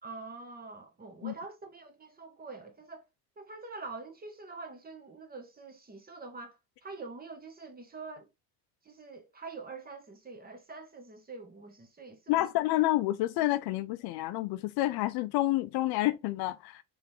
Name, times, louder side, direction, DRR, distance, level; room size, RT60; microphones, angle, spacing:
voice 1, 0.0-3.0 3.4-8.3 8.8-12.5, right 3 dB, 20° right, 1.0 m, -45 dB
voice 2, 12.3-16.8, left 16 dB, 60° left, 0.5 m, -29 dB
3.7 x 3.5 x 2.9 m
supercardioid pair, 100°, 44 cm